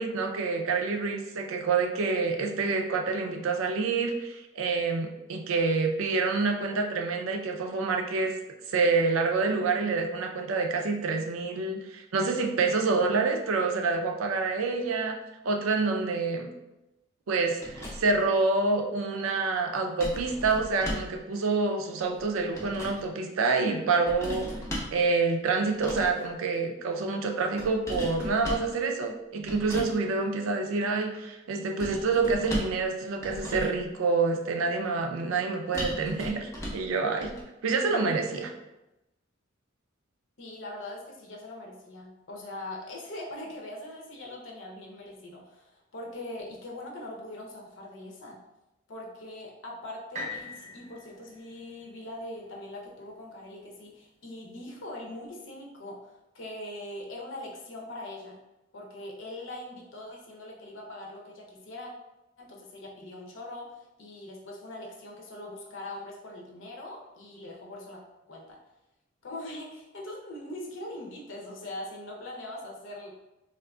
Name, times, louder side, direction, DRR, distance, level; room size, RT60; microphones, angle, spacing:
voice 1, 0.0-8.3 8.7-15.2 15.4-16.5 17.3-24.5 24.9-37.3 37.6-38.5, right 4 dB, 90° right, 3 dB, 0.4 m, -27 dB
sound 1, 17.6-18.2 20.0-21.2 22.2-23.0 24.1-25.0 25.7-26.2 27.6-28.7 29.5-29.9 31.8-32.8 33.2-33.8 35.7-36.9 37.2-37.4, equal, 15° left, 0.6 m, -36 dB
voice 2, 40.4-48.4 48.9-58.4 58.7-61.9 62.4-68.0 68.3-68.6 69.2-73.1, left 1 dB, 75° left, -1 dB, 0.7 m, -42 dB
sound 2, 50.1-54.1 54.7-54.8, left 2 dB, 35° right, 0.6 m, -43 dB
3.7 x 2.4 x 2.3 m, 0.95 s
head